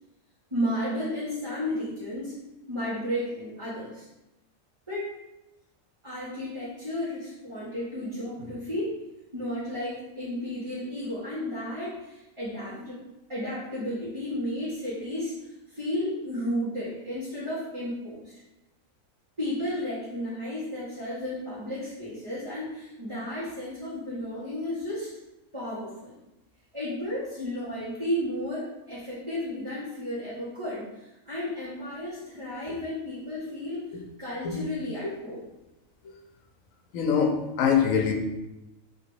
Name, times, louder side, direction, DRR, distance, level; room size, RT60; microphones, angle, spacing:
voice 1, 0.5-2.3 2.7-4.1 4.9-5.1 6.0-8.9 9.3-13.0 13.3-15.3 15.7-18.3 19.4-25.1 25.5-26.2 26.7-33.9 34.2-35.4, left 1 dB, 25° right, -12 dB, 1.4 m, -33 dB
voice 2, 36.9-38.1, left 7 dB, 80° left, 3 dB, 1.1 m, -24 dB
3.3 x 2.9 x 4.6 m, 0.95 s
omnidirectional pair, 1.4 m